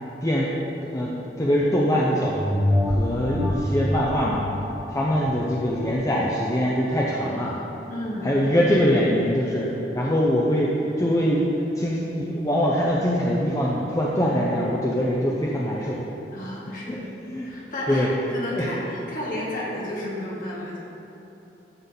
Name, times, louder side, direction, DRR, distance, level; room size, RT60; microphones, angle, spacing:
voice 1, 0.2-0.6 0.8-1.1 1.4-2.4 2.9-4.4 4.9-7.5 8.2-10.7 11.0-16.0 16.9-17.0 17.3-18.1 18.5-18.7, equal, 20° left, -5 dB, 0.8 m, -23 dB
sound 1, 2.3-7.3 7.8-7.9, left 1 dB, 10° right, 1.0 m, -27 dB
voice 2, 7.9-8.3 16.3-17.1 17.4-20.8, left 1 dB, 50° left, -6 dB, 2.4 m, -32 dB
13.5 x 6.0 x 4.1 m, 2.9 s
head